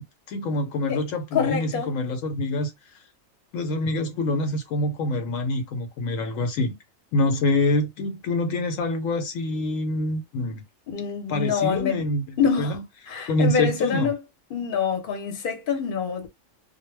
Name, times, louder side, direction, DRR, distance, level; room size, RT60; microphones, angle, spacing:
voice 1, 0.0-3.0 3.5-6.8 7.1-10.6 11.3-12.2 12.6-12.8 13.3-14.1, left 2 dB, 75° left, 1.0 m, -26 dB
voice 2, 1.3-2.0 10.9-12.0 12.4-12.8 13.1-14.2 14.5-16.3, left 6 dB, 50° left, 0.8 m, -26 dB
2.2 x 2.1 x 3.1 m
omnidirectional pair, 1.4 m